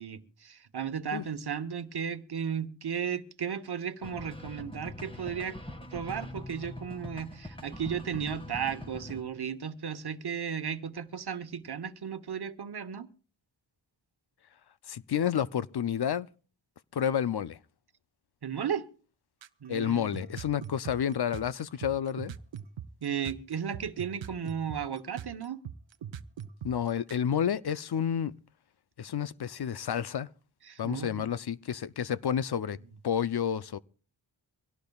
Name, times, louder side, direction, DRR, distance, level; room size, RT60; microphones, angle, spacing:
voice 1, 0.0-5.6 5.9-13.1 18.4-18.8 19.6-20.1 23.0-25.6 30.7-31.2, right 7 dB, 60° right, 1.1 m, -35 dB
sound 1, 4.0-9.2, left 1 dB, 10° left, 1.8 m, -43 dB
voice 2, 14.9-16.3 16.9-17.6 19.7-22.3 26.6-28.3 29.0-30.3 30.8-32.8 33.0-33.8, left 8 dB, 60° left, 0.6 m, -30 dB
sound 2, 19.4-19.7 20.1-27.3, right 9 dB, 80° right, 0.7 m, -40 dB
24.0 x 17.0 x 2.3 m
wide cardioid pair, 75°, 45 cm